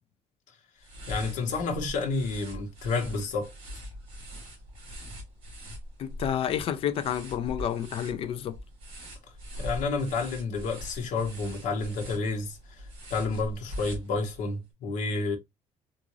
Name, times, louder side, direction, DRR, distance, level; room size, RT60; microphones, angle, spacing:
sound 1, 0.8-14.5, equal, 40° right, 2.2 m, -42 dB
voice 1, 1.1-3.5 9.6-12.8 13.1-15.4, left 3 dB, 70° left, 1.0 m, -30 dB
voice 2, 6.0-8.6, left 9 dB, 45° left, 0.4 m, -30 dB
3.7 x 2.5 x 2.9 m
cardioid pair, 180°, 13 cm